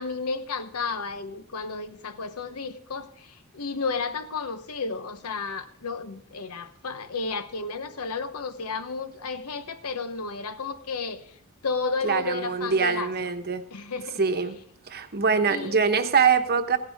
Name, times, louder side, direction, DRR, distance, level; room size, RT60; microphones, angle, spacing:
voice 1, 0.0-11.3 11.6-13.3 13.7-14.2 15.5-15.8, left 4 dB, 80° left, 0.9 m, -32 dB
voice 2, 12.0-13.6 14.2-14.6 14.9-16.8, right 5 dB, 45° right, 1.0 m, -23 dB
15.5 x 10.5 x 3.5 m
head